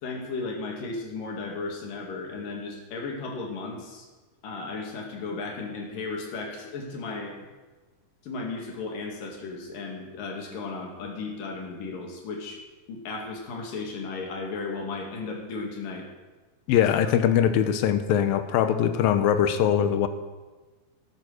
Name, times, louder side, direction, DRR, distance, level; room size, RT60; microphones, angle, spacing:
voice 1, 0.0-4.1 4.4-7.4 8.2-12.6 12.9-16.1 17.0-17.2, left 3 dB, 70° left, 0 dB, 3.9 m, -35 dB
voice 2, 16.7-20.1, left 9 dB, 90° left, 9 dB, 2.7 m, -22 dB
14.0 x 9.8 x 6.5 m, 1.3 s
omnidirectional pair, 4.1 m